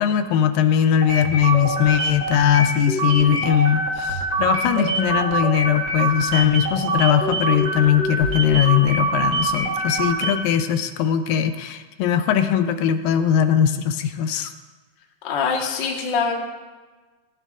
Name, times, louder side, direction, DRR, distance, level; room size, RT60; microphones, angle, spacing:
voice 1, 0.0-14.5, left 9 dB, 80° left, 9 dB, 2.1 m, -20 dB
sound 1, 1.0-10.6, right 2 dB, 75° right, 1.0 m, -24 dB
voice 2, 15.2-16.3, left 5 dB, 60° left, 0 dB, 1.2 m, -23 dB
16.0 x 15.0 x 2.5 m, 1.3 s
omnidirectional pair, 4.3 m